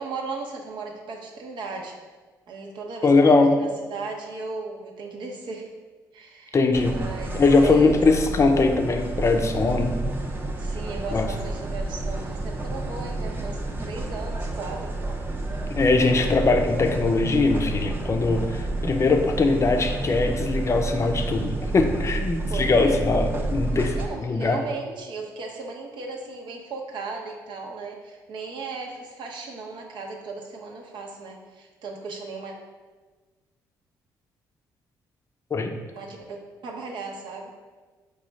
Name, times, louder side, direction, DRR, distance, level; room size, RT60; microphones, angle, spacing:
voice 1, 0.0-2.0 2.5-5.7 6.1-8.0 10.6-14.9 22.5-23.1 23.7-32.5 35.9-36.4 36.6-37.5, right 3 dB, 70° right, 1 dB, 0.7 m, -36 dB
voice 2, 3.0-3.5 6.5-7.0 7.3-10.0 11.1-11.3 15.8-24.6 35.5-35.8, left 3 dB, 35° left, 5 dB, 0.5 m, -21 dB
sound 1, 6.7-24.1, right 2 dB, 25° right, 0.7 m, -30 dB
4.9 x 2.3 x 4.2 m, 1.4 s
cardioid pair, 75°, 8 cm